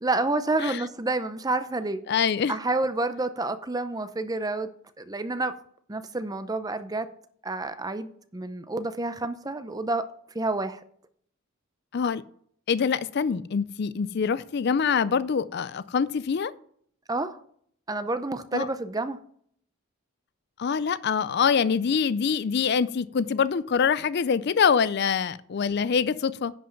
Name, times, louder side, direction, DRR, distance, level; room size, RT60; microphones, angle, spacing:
voice 1, 0.0-2.0 2.5-4.7 5.0-5.5 5.9-7.1 7.4-10.1 10.3-10.8 17.1-17.4 17.9-19.2, right 2 dB, 15° right, 0.6 m, -29 dB
voice 2, 2.1-2.5 11.9-12.2 12.7-16.5 18.5-18.7 20.6-26.5, left 6 dB, 50° left, 0.4 m, -25 dB
10.5 x 5.4 x 5.8 m
head